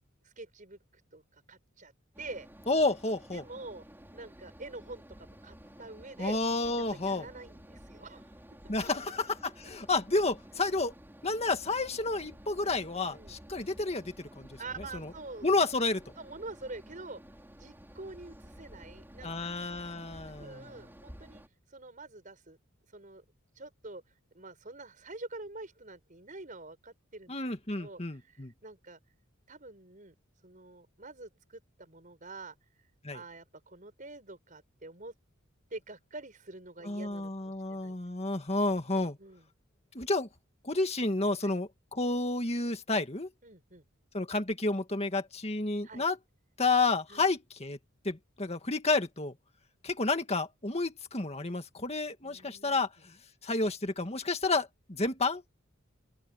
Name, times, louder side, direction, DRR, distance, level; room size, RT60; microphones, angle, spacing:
voice 1, 0.2-0.8 1.1-1.2 1.5-1.9 2.2-2.5 3.3-3.8 4.1-6.4 6.7-8.3 8.6-8.7 13.0-13.4 14.6-15.5 16.2-17.2 17.6-19.5 20.3-21.4 21.7-22.6 22.9-23.2 23.6-24.0 24.3-27.3 27.8-28.0 28.3-29.0 29.5-30.1 30.4-32.6 33.1-35.1 35.7-37.9 39.2-39.4 41.4-41.5 43.4-43.8 45.8-46.0 47.1-47.2 52.2-52.9, right 2 dB, 40° right, 6.7 m, -46 dB
sound 1, 2.1-21.5, equal, 10° right, 5.5 m, -52 dB
voice 2, 2.7-3.4 6.2-7.3 8.7-9.3 9.6-10.9 11.2-15.1 15.4-16.0 19.2-20.7 27.3-28.5 33.0-33.2 36.8-39.2 39.9-40.3 40.6-43.3 44.1-46.2 46.6-47.8 48.0-49.3 49.8-53.1 53.4-55.4, left 3 dB, 30° left, 2.0 m, -30 dB
open air
head